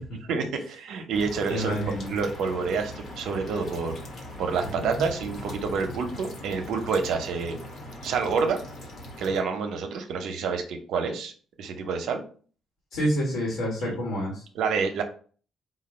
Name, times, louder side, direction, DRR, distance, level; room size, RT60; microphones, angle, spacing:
voice 1, 0.3-3.9 4.4-7.6 8.0-8.6 9.2-11.3 11.6-12.2 13.8-14.0 14.5-15.0, right 5 dB, 80° right, 4 dB, 0.8 m, -28 dB
sound 1, 1.1-9.4, left 1 dB, 60° left, 1.2 m, -40 dB
voice 2, 1.5-2.1 4.6-5.0 12.9-14.4, equal, 85° left, -3 dB, 1.5 m, -28 dB
4.2 x 2.3 x 4.2 m, 0.42 s
cardioid pair, 90°, 0 cm